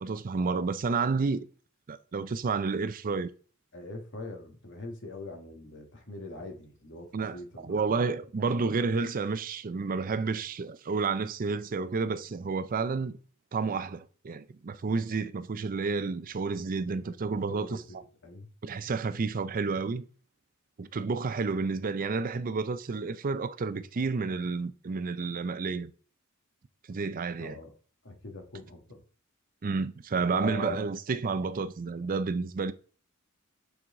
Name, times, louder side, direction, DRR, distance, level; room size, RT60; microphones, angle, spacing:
voice 1, 0.0-1.5 1.9-3.3 7.1-7.4 7.6-13.2 13.5-17.8 18.6-20.0 20.8-25.9 26.9-27.6 29.6-32.7, right 4 dB, 40° right, 0.4 m, -30 dB
voice 2, 3.7-7.9 17.5-18.5 27.4-27.7 28.0-29.0 30.2-30.9, left 3 dB, 55° left, 1.8 m, -42 dB
8.6 x 4.6 x 3.7 m
head